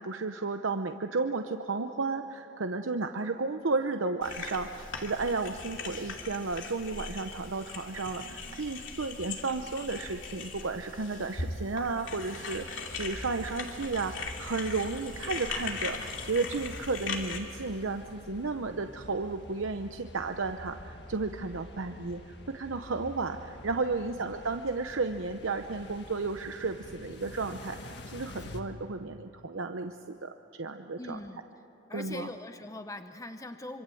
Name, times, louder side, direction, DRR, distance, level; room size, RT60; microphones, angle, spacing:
voice 1, 0.0-30.3 30.6-31.2 31.9-32.3, right 3 dB, 85° right, 7 dB, 0.8 m, -33 dB
sound 1, 4.2-17.4, left 4 dB, 75° left, 2.8 m, -39 dB
sound 2, 12.9-28.6, left 1 dB, 60° left, 1.9 m, -47 dB
voice 2, 31.0-31.4 31.9-33.8, left 1 dB, 15° left, 8 dB, 0.8 m, -41 dB
25.5 x 25.5 x 7.8 m, 2.9 s
head